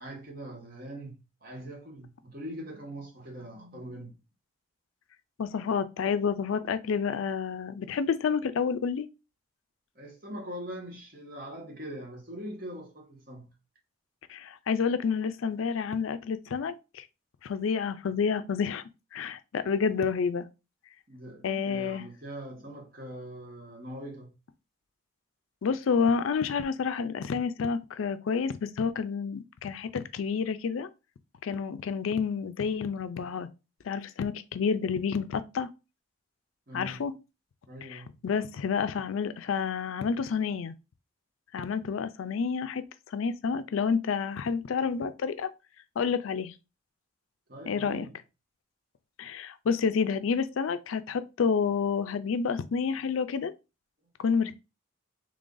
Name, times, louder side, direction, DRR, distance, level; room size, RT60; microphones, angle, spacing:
voice 1, 0.0-4.2 9.9-13.5 21.1-24.3 36.7-37.0 37.7-38.2 47.5-48.1, right 1 dB, 45° right, 1.2 m, -42 dB
voice 2, 5.4-9.1 14.3-17.0 17.4-18.8 19.1-20.5 21.4-22.0 25.6-30.9 31.4-33.5 33.8-35.7 36.7-37.1 37.9-40.7 41.5-42.8 43.1-45.5 46.0-46.6 47.7-48.1 49.2-53.5 54.2-54.6, left 6 dB, 80° left, 0.4 m, -29 dB
3.3 x 2.5 x 3.7 m
head